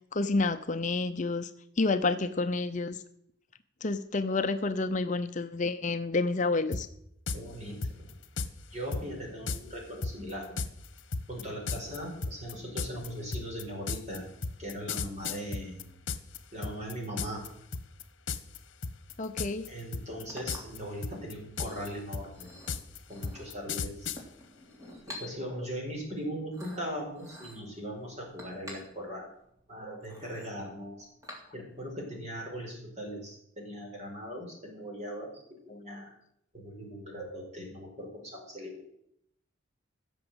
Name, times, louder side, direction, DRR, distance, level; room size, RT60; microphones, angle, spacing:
voice 1, 0.1-1.5 1.8-3.0 3.8-6.9 19.2-19.7 35.7-35.8, left 3 dB, 40° left, 9 dB, 0.6 m, -29 dB
sound 1, 6.7-6.8 7.3-7.4 7.8-8.5 8.9-9.0 9.5-9.6 10.0-16.4 16.6-17.5 17.7-18.0 18.3-18.6 18.8-19.7 19.9-20.8 21.0-24.2, left 4 dB, 65° left, 1.1 m, -34 dB
voice 2, 7.3-8.1 8.7-10.5 11.3-14.3 14.6-15.9 16.5-17.4 19.7-22.5 23.1-24.1 25.1-29.3 29.7-31.0 31.5-35.3 35.7-36.1 36.5-38.8, equal, 35° right, 0 dB, 4.7 m, -39 dB
Chink clink, 19.8-31.9, left 1 dB, 15° right, 3.3 m, -50 dB
16.0 x 7.0 x 8.0 m, 0.74 s
head